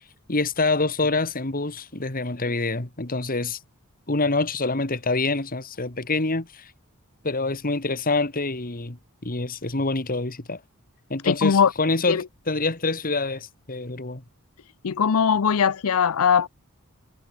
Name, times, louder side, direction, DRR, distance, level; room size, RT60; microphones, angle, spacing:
voice 1, 0.3-3.6 4.1-6.7 7.2-9.0 9.2-10.6 11.1-14.2, left 3 dB, 40° left, 2.2 m, -26 dB
voice 2, 11.2-11.7 12.1-12.2 14.8-16.5, left 7 dB, 75° left, 0.5 m, -20 dB
head